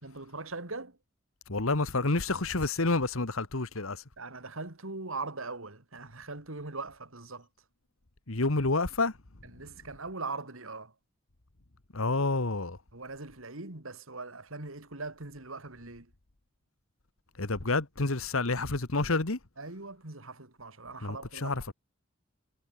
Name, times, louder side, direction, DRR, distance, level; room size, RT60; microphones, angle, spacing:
voice 1, 0.0-1.0 4.2-7.5 9.5-10.9 12.9-16.1 19.6-21.6, right 3 dB, 80° right, 2.8 m, -41 dB
voice 2, 1.5-4.0 8.3-9.1 11.9-12.8 17.4-19.4 21.0-21.2 21.4-21.7, left 3 dB, 80° left, 1.7 m, -29 dB
head